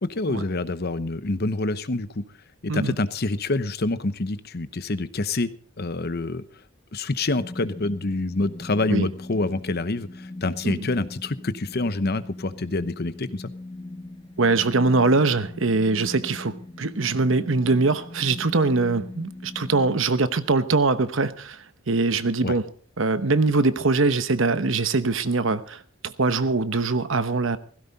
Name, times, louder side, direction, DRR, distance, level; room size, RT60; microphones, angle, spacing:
voice 1, 0.0-2.2 2.6-5.5 5.8-6.4 6.9-13.5 22.4-22.5, left 2 dB, 50° left, 0.9 m, -27 dB
sound 1, 7.3-20.0, left 2 dB, 25° left, 1.7 m, -40 dB
voice 2, 14.4-22.6 23.0-27.6, right 3 dB, 65° right, 1.0 m, -22 dB
17.0 x 16.0 x 4.1 m
head